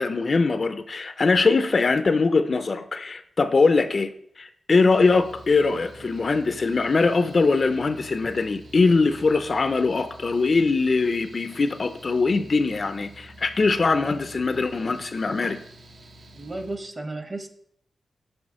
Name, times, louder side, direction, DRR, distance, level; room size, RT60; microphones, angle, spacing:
voice 1, 0.0-15.6, left 4 dB, 40° left, 10 dB, 0.4 m, -22 dB
Mechanical fan, 4.9-16.8, right 1 dB, 55° right, 0.7 m, -48 dB
voice 2, 16.4-17.5, right 2 dB, 25° right, 6 dB, 0.8 m, -33 dB
6.2 x 5.1 x 6.1 m, 0.68 s
wide cardioid pair, 160°, 0 cm